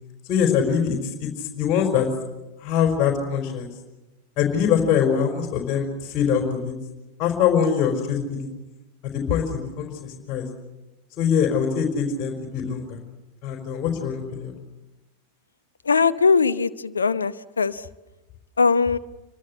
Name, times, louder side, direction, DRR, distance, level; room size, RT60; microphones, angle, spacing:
voice 1, 0.3-2.1 2.6-3.7 4.4-6.7 7.2-8.5 9.1-10.5 11.2-13.0 13.4-14.5, left 7 dB, 35° left, 2 dB, 4.7 m, -23 dB
voice 2, 15.9-17.8 18.6-19.0, left 5 dB, 75° left, 13 dB, 0.9 m, -20 dB
28.5 x 24.5 x 8.0 m, 1.0 s
figure-of-eight pair, 90°, 0 cm